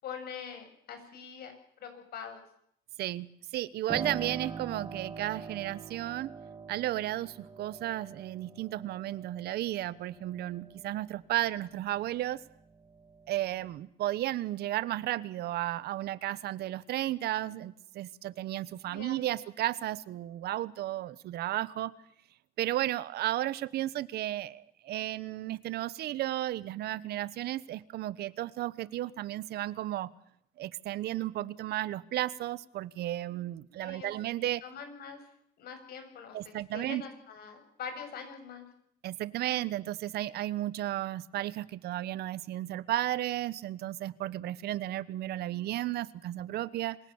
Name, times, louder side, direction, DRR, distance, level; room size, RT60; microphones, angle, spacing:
voice 1, 0.0-1.5 1.8-2.4 18.9-19.2 33.8-34.1 34.6-35.2 35.6-38.7, left 6 dB, 65° left, 8 dB, 6.9 m, -43 dB
voice 2, 3.0-6.3 6.7-12.4 13.3-21.9 22.6-30.1 30.6-34.6 36.3-37.0 39.0-47.0, right 14 dB, 70° right, 19 dB, 1.1 m, -33 dB
Piano, 3.9-12.3 12.7-13.8, right 5 dB, 25° right, 2.4 m, -44 dB
26.5 x 17.5 x 7.1 m, 0.71 s
cardioid pair, 110°, 17 cm